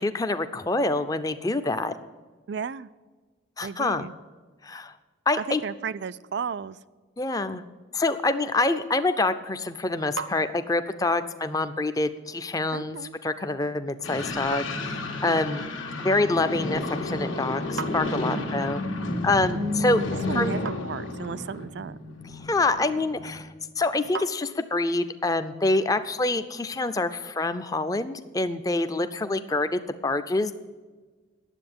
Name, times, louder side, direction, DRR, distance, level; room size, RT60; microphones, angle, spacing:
voice 1, 0.0-2.0 3.6-4.1 4.6-4.9 5.3-5.6 7.2-7.6 7.9-15.0 15.2-15.6 16.0-18.8 19.2-20.0 20.3-20.5 22.3-30.5, left 2 dB, 15° left, 10 dB, 0.4 m, -26 dB
voice 2, 2.5-2.9 3.6-4.1 5.4-6.8 12.7-13.1 15.2-15.5 18.3-18.7 20.3-22.0, right 6 dB, 55° right, 17 dB, 0.4 m, -34 dB
sound 1, 9.2-25.0, right 4 dB, 85° right, 0.8 m, -45 dB
sound 2, 14.0-23.4, left 2 dB, 80° left, 1.5 m, -31 dB
10.0 x 7.7 x 8.6 m, 1.4 s
head